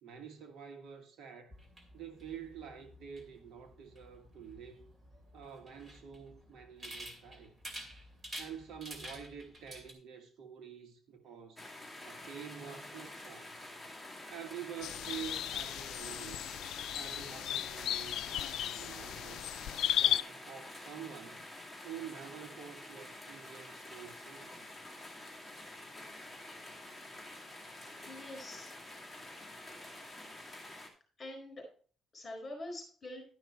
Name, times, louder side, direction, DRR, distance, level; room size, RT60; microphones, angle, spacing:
voice 1, 0.0-1.5 1.9-4.9 5.3-7.5 8.4-11.6 12.0-13.6 14.3-16.5 16.9-19.4 20.0-21.4 21.8-24.6, right 8 dB, 70° right, 1.6 m, -48 dB
sound 1, 1.5-9.9, equal, 20° right, 2.5 m, -50 dB
sound 2, 11.6-30.9, left 1 dB, 5° left, 2.2 m, -48 dB
sound 3, 14.8-20.2, left 11 dB, 75° left, 0.3 m, -35 dB
voice 2, 28.0-28.8 31.2-31.6 32.1-33.2, left 1 dB, 25° left, 4.3 m, -45 dB
11.5 x 6.0 x 4.2 m
cardioid pair, 140°, 0 cm